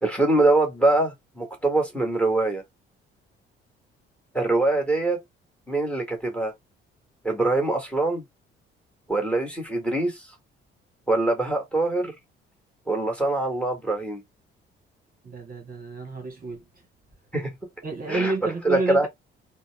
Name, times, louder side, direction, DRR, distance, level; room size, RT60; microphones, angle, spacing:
voice 1, 0.0-2.6 4.3-5.2 5.7-6.5 7.2-8.2 9.1-10.2 11.1-12.1 12.9-14.2 17.3-17.5 18.1-18.3 18.6-19.1, right 2 dB, 5° left, 1.7 m, -23 dB
voice 2, 15.2-16.6 17.8-19.1, right 3 dB, 30° right, 1.3 m, -30 dB
3.8 x 2.3 x 3.4 m
figure-of-eight pair, 45°, 30 cm